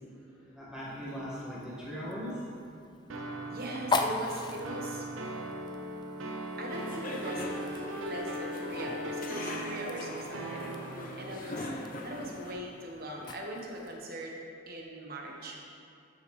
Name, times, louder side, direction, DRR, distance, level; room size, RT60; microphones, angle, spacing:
voice 1, 0.0-2.5 6.0-6.1 11.5-11.8, equal, 5° right, -8 dB, 1.6 m, -41 dB
Fire, 0.8-14.1, left 3 dB, 20° left, 0.3 m, -41 dB
sound 1, 3.1-11.4, right 1 dB, 90° right, 0.6 m, -39 dB
voice 2, 3.5-5.0 6.6-7.5 7.9-10.7 11.2-11.7 12.0-14.3 14.7-15.6, right 1 dB, 50° right, 0 dB, 1.1 m, -40 dB
sound 2, 6.7-12.5, left 2 dB, 45° left, 0.7 m, -42 dB
12.5 x 5.5 x 3.2 m, 2.4 s
head